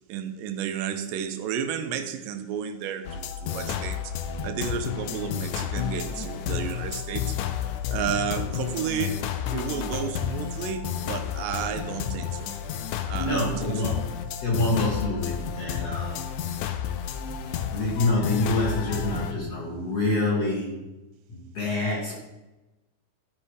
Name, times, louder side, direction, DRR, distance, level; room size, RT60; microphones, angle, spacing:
voice 1, 0.1-4.0 4.4-7.4 7.9-9.2 9.5-12.5 13.1-13.9, right 8 dB, 80° right, 8 dB, 2.3 m, -32 dB
sound 1, 3.0-19.3, left 8 dB, 80° left, 1.9 m, -31 dB
voice 2, 13.1-14.0 14.4-16.3 17.7-20.8 21.3-22.1, left 2 dB, 50° left, -6 dB, 2.9 m, -26 dB
13.0 x 5.8 x 4.9 m, 1.0 s
omnidirectional pair, 4.2 m